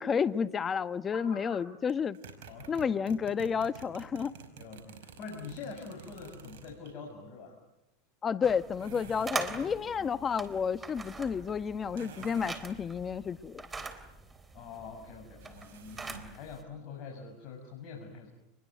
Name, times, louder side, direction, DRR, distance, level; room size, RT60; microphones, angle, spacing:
voice 1, 0.0-2.2 2.7-4.3 8.2-13.6, left 6 dB, 25° left, 1.2 m, -31 dB
voice 2, 1.1-1.6 2.5-2.8 4.6-7.6 9.8-10.1 14.5-18.3, left 5 dB, 50° left, 6.4 m, -45 dB
sound 1, 1.9-6.9 8.8-9.6 11.9-12.7 15.4-16.4, right 6 dB, 75° right, 5.2 m, -49 dB
sound 2, 8.4-16.6, right 4 dB, 15° right, 3.5 m, -43 dB
28.5 x 22.0 x 9.2 m
hypercardioid pair, 100°, 0 cm